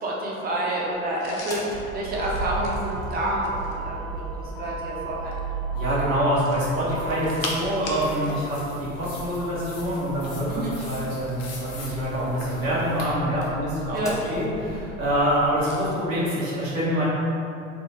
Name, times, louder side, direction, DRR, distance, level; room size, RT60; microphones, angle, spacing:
voice 1, 0.0-5.4 10.5-10.7 13.9-14.1, right 1 dB, 25° right, -4 dB, 0.7 m, -29 dB
sound 1, 1.2-3.9 6.3-8.4 8.7-8.9 11.1-11.8 12.6-13.7 15.6-15.8, left 2 dB, 80° left, 0.6 m, -38 dB
Motor vehicle (road), 1.4-15.9, right 3 dB, 10° left, 0.4 m, -35 dB
voice 2, 5.7-17.0, equal, 75° right, -9 dB, 1.4 m, -26 dB
sound 2, 7.0-13.1, left 2 dB, 55° left, 1.0 m, -44 dB
4.3 x 2.2 x 3.0 m, 2.6 s
figure-of-eight pair, 80°, 39 cm